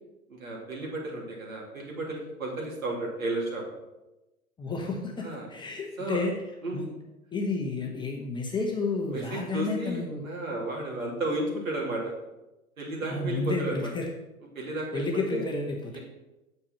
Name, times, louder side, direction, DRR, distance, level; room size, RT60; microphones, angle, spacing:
voice 1, 0.3-3.6 5.2-5.5 6.0-6.2 6.6-6.9 9.1-12.1 12.8-13.9 14.5-15.5 15.9-16.0, right 2 dB, 65° right, -1 dB, 3.1 m, -33 dB
voice 2, 4.6-6.4 6.7-6.9 7.3-10.2 13.0-14.1 14.9-16.0, left 3 dB, 10° left, 0 dB, 1.0 m, -31 dB
8.7 x 6.8 x 5.8 m, 1.0 s
figure-of-eight pair, 100°, 43 cm